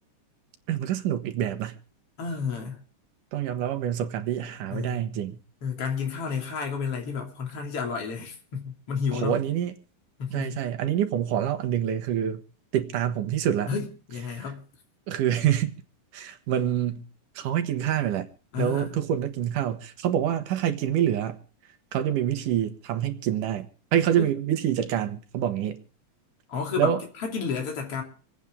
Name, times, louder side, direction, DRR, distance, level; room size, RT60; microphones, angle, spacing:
voice 1, 0.7-1.8 3.3-5.4 9.1-9.7 10.3-12.4 12.7-13.7 14.3-14.4 15.1-15.7 16.1-17.1 17.4-18.3 18.6-21.4 21.9-25.8 26.8-27.0, right 10 dB, 80° right, 2.9 m, -26 dB
voice 2, 2.2-2.8 4.7-5.0 5.6-9.4 10.2-10.6 13.7-14.6 18.5-19.0 24.1-24.3 26.5-28.0, left 5 dB, 45° left, 3.8 m, -31 dB
27.0 x 9.2 x 3.5 m
omnidirectional pair, 3.7 m